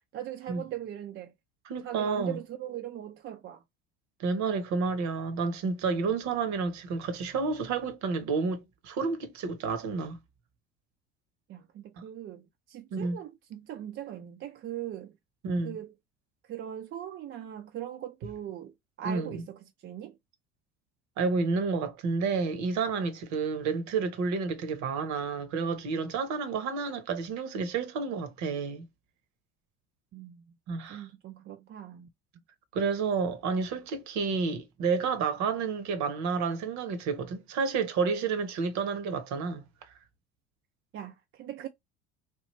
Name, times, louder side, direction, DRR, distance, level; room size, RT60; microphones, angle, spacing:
voice 1, 0.1-1.3 1.8-3.6 11.5-15.1 15.6-15.9 16.5-20.1 30.1-30.4 30.9-32.1 40.9-41.7, right 11 dB, 35° right, 0.5 m, -40 dB
voice 2, 1.7-2.4 4.2-10.2 12.9-13.2 15.4-15.7 19.0-19.4 21.2-28.8 30.7-31.1 32.7-39.9, right 4 dB, 50° right, 0.9 m, -30 dB
3.2 x 2.4 x 3.0 m
hypercardioid pair, 70°, 36 cm